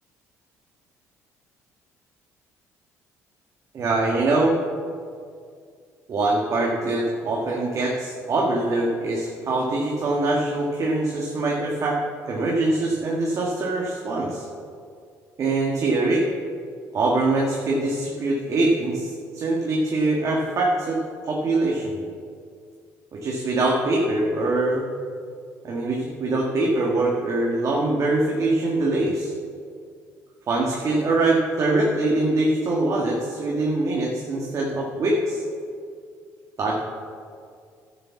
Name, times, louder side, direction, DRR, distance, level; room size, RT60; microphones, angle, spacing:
voice 1, 3.7-4.6 6.1-12.0 12.2-14.4 15.4-16.2 16.9-22.0 23.1-24.9 25.6-29.3 30.5-35.4 36.6-36.8, right 2 dB, 50° right, -2 dB, 1.8 m, -23 dB
11.0 x 7.0 x 7.2 m, 2.2 s
supercardioid pair, 75°, 7 cm